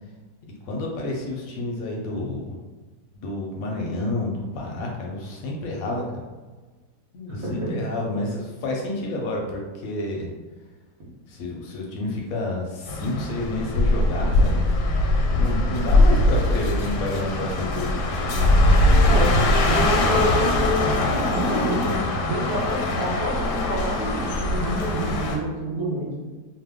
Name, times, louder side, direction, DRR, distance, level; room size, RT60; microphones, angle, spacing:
voice 1, 0.4-2.6 3.1-6.0 7.1-10.3 11.3-14.6 15.3-18.2, left 2 dB, 70° left, -1 dB, 0.9 m, -29 dB
voice 2, 7.4-7.8 19.0-26.1, equal, 50° right, -6 dB, 1.1 m, -27 dB
sound 1, 12.9-25.4, left 1 dB, 85° left, 1.2 m, -21 dB
2.8 x 2.1 x 3.4 m, 1.3 s
omnidirectional pair, 1.8 m